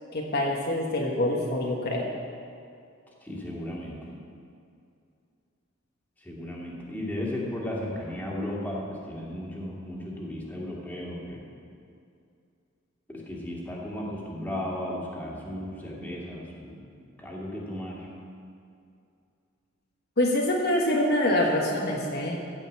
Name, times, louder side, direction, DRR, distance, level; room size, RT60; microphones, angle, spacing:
voice 1, 0.1-2.1 20.2-22.4, left 1 dB, 55° left, -1 dB, 1.4 m, -25 dB
voice 2, 3.2-4.0 6.2-11.4 13.1-16.9 17.2-18.1, left 1 dB, 10° left, -4 dB, 2.3 m, -35 dB
15.0 x 5.3 x 8.4 m, 2.5 s
head